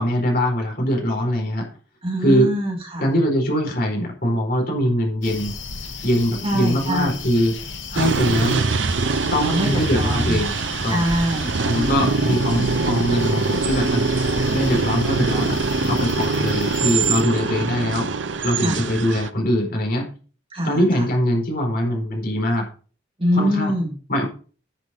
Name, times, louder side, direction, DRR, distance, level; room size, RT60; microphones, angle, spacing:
voice 1, 0.0-1.7 2.2-2.5 3.0-5.5 6.0-7.6 7.9-8.7 9.3-10.5 10.8-11.0 11.6-14.1 14.5-15.6 15.9-18.1 18.4-20.1 20.6-22.7 23.4-23.7 24.1-24.3, equal, 50° left, 1 dB, 4.5 m, -22 dB
voice 2, 2.0-3.1 6.4-7.2 9.4-10.4 10.9-12.1 17.5-17.6 18.6-18.8 20.5-21.1 23.2-23.9, equal, 30° right, 0 dB, 3.1 m, -24 dB
sound 1, 5.2-17.2, left 3 dB, 85° left, 2.2 m, -33 dB
sound 2, 8.0-19.3, right 4 dB, 70° right, 0.7 m, -23 dB
10.5 x 6.4 x 5.4 m, 0.38 s
head